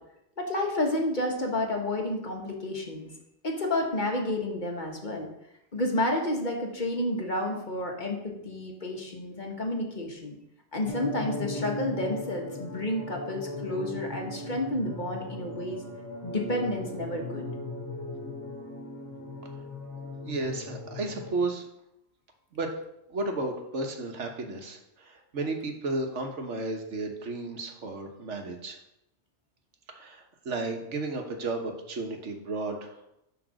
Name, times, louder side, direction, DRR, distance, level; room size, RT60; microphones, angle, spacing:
voice 1, 0.4-3.1 3.4-5.3 5.7-10.4 10.7-15.8 16.2-17.5, left 1 dB, 45° left, 1 dB, 1.5 m, -30 dB
sound 1, 10.9-21.4, left 2 dB, 15° left, 2.5 m, -38 dB
voice 2, 20.2-21.7 22.5-22.7 23.1-28.8 29.9-33.0, right 2 dB, 90° right, 3 dB, 1.5 m, -33 dB
10.0 x 3.9 x 6.4 m, 0.84 s
omnidirectional pair, 1.2 m